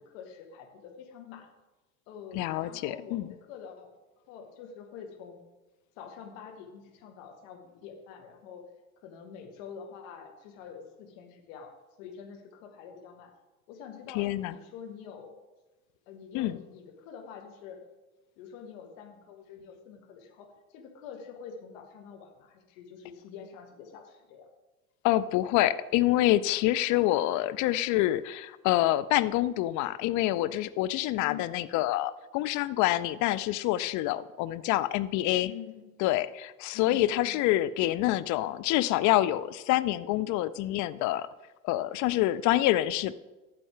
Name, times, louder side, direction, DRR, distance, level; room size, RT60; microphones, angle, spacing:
voice 1, 0.0-1.5 2.1-3.9 4.3-5.4 6.0-8.6 9.0-11.7 12.0-13.3 13.7-15.3 16.1-17.8 18.4-24.5 31.2-31.6 35.4-35.9 36.7-37.4, left 7 dB, 60° left, 3 dB, 1.9 m, -46 dB
voice 2, 2.3-3.3 14.1-14.5 16.3-16.6 25.0-35.5 36.0-41.3 41.6-43.1, left 15 dB, 40° left, 14 dB, 0.6 m, -27 dB
13.0 x 6.8 x 3.8 m, 1.1 s
figure-of-eight pair, 70°, 45 cm